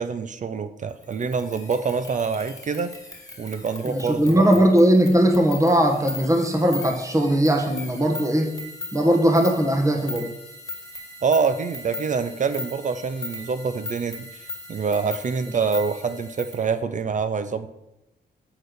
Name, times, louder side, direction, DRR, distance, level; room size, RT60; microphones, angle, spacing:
voice 1, 0.0-2.9 3.4-4.6 11.2-17.7, right 5 dB, 45° right, 11 dB, 0.5 m, -26 dB
sound 1, 1.0-16.7, left 2 dB, 20° left, 1.9 m, -39 dB
voice 2, 3.8-8.5 8.9-10.3, right 1 dB, 20° right, 2 dB, 1.3 m, -19 dB
7.8 x 4.2 x 6.7 m, 0.90 s
cardioid pair, 100°, 18 cm